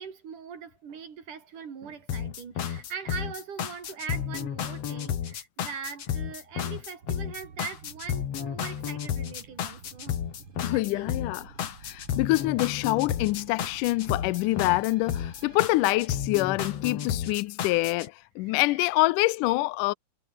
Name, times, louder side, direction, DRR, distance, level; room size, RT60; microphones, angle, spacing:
voice 1, 0.0-10.2 10.7-11.1 18.4-18.7, right 6 dB, 70° right, 4.7 m, -41 dB
sound 1, 2.1-18.1, left 9 dB, 55° left, 2.6 m, -32 dB
sound 2, 7.0-16.1, right 5 dB, 45° right, 3.7 m, -51 dB
voice 2, 10.6-11.5 11.8-19.9, left 20 dB, 80° left, 2.1 m, -26 dB
omnidirectional pair, 3.7 m